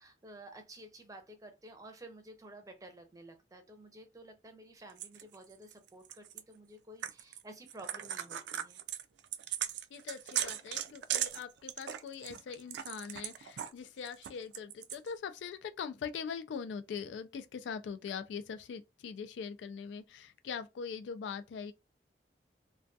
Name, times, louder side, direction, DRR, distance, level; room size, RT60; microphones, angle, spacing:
voice 1, 0.0-8.8, right 1 dB, 20° right, 0.6 m, -52 dB
sound 1, 5.0-6.4 7.0-7.4 7.7-13.7 14.1-15.1, right 10 dB, 75° right, 0.3 m, -38 dB
voice 2, 9.9-21.7, left 6 dB, 85° left, 0.3 m, -42 dB
2.2 x 2.2 x 2.6 m
head